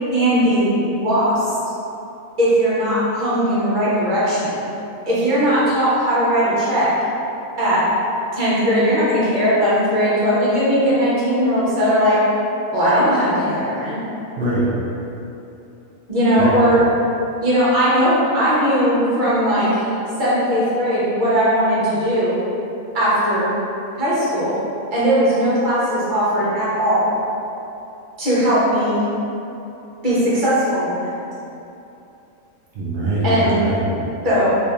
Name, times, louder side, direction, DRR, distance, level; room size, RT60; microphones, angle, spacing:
voice 1, 0.1-1.5 2.4-4.6 5.1-6.9 7.6-7.8 8.3-12.2 12.7-14.0 16.1-16.8 17.4-19.9 20.2-22.3 22.9-23.5 23.9-24.5 24.9-27.1 28.2-29.0 30.0-31.1 33.2-33.6 34.2-34.5, equal, 40° right, -10 dB, 1.0 m, -18 dB
voice 2, 14.4-14.7 16.3-16.8 32.7-34.1, right 1 dB, 70° right, -8 dB, 0.5 m, -23 dB
2.8 x 2.5 x 3.3 m, 2.8 s
omnidirectional pair, 1.5 m